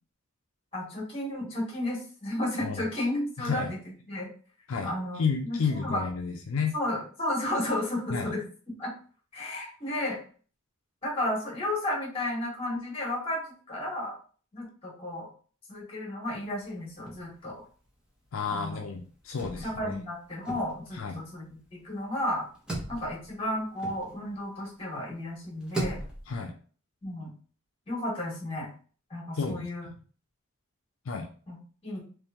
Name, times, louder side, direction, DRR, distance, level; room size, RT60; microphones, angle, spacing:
voice 1, 0.7-3.8 4.1-4.3 4.8-6.0 6.7-8.4 8.8-8.9 9.3-10.2 11.0-13.4 13.7-14.1 14.5-15.3 15.7-17.5 18.5-18.8 19.6-21.4 21.8-22.5 22.9-26.0 27.0-27.3 27.9-28.7 29.1-29.8 31.5-31.6 31.8-32.0, left 1 dB, 30° left, -3 dB, 1.7 m, -33 dB
voice 2, 3.4-3.7 4.7-6.7 8.1-8.3 18.3-20.0 20.9-21.2 26.3-26.5 29.4-29.9 31.1-31.3, left 5 dB, 75° left, 3 dB, 0.5 m, -31 dB
sound 1, 16.3-17.6 17.8-17.9 18.2-24.6 25.2-26.4, right 2 dB, 5° right, 1.0 m, -39 dB
3.5 x 3.3 x 2.9 m, 0.41 s
head